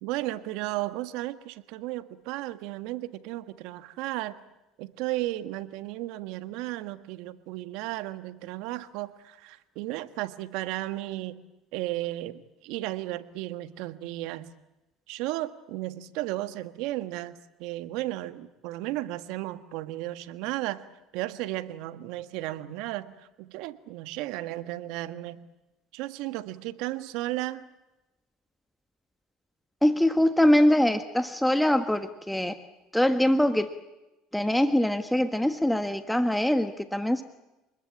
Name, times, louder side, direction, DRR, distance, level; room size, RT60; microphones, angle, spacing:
voice 1, 0.0-4.4 4.8-11.4 11.7-14.5 15.1-20.9 21.1-25.5 25.9-27.6, right 16 dB, 75° right, 11 dB, 1.6 m, -34 dB
voice 2, 29.8-32.5 32.9-33.7 34.3-37.2, left 1 dB, 5° left, 9 dB, 1.4 m, -23 dB
28.0 x 21.0 x 8.7 m, 0.99 s
supercardioid pair, 105°, 0 cm